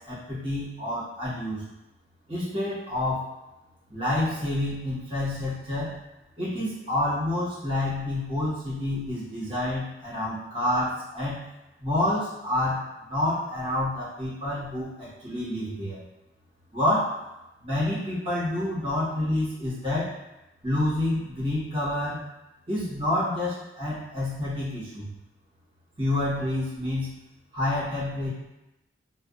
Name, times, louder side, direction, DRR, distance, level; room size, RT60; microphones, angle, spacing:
voice 1, 0.0-1.6 2.3-3.2 3.9-6.0 6.4-11.4 11.8-16.0 16.7-17.2 17.6-20.1 20.6-22.2 22.7-25.1 26.0-27.1 27.5-28.3, left 1 dB, 30° right, -10 dB, 1.1 m, -28 dB
2.5 x 2.2 x 2.3 m, 0.96 s
head